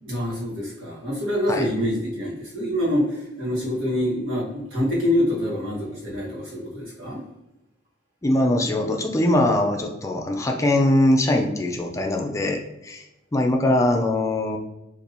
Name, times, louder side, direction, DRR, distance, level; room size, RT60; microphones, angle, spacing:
voice 1, 0.0-7.2, left 1 dB, 80° right, -6 dB, 1.4 m, -26 dB
voice 2, 8.2-13.1 13.3-14.6, left 1 dB, 15° left, 2 dB, 0.3 m, -22 dB
2.7 x 2.6 x 4.2 m, 0.94 s
head